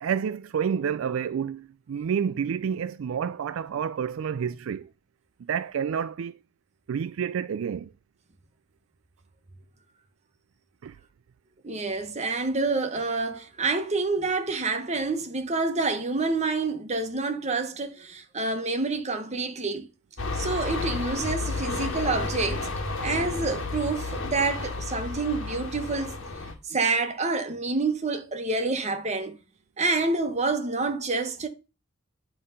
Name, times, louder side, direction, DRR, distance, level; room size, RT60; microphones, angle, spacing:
voice 1, 0.0-4.9 5.4-6.4 6.9-7.9 10.8-10.9, right 7 dB, 75° right, 0.3 m, -29 dB
voice 2, 11.6-19.9 20.3-22.7 23.0-26.2 26.7-29.4 29.8-31.5, right 3 dB, 35° right, 1.1 m, -28 dB
sound 1, 20.2-26.5, left 3 dB, 65° left, 1.7 m, -31 dB
9.9 x 3.4 x 5.6 m
head